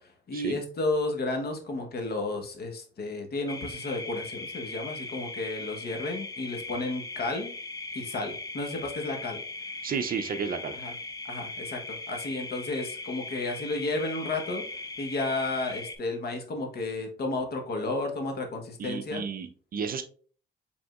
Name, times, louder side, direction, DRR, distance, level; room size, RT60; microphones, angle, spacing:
voice 1, 0.3-7.5 7.9-9.4 10.7-10.9 11.3-14.6 15.0-19.2, left 2 dB, 55° left, 4 dB, 1.0 m, -32 dB
sound 1, 3.5-16.0, left 3 dB, 20° left, 0.5 m, -39 dB
voice 2, 9.8-10.7 18.8-20.0, right 6 dB, 45° right, 9 dB, 0.5 m, -32 dB
5.0 x 3.6 x 2.4 m, 0.43 s
cardioid pair, 90°, 20 cm